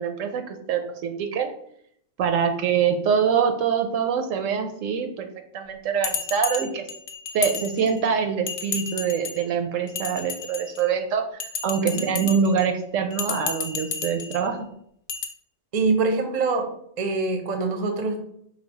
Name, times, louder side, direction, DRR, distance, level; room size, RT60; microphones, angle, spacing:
voice 1, 0.0-1.5 2.2-5.3 5.5-6.9 7.3-14.7, right 6 dB, 75° right, 6 dB, 0.9 m, -24 dB
Bell, 6.0-8.1 8.5-9.4 9.9-10.9 11.4-12.6 13.1-14.4 15.1-15.3, left 6 dB, 65° left, 0.9 m, -32 dB
voice 2, 15.7-16.7 17.0-18.2, right 3 dB, 40° right, 4 dB, 0.7 m, -24 dB
5.0 x 2.3 x 4.5 m, 0.69 s
omnidirectional pair, 1.4 m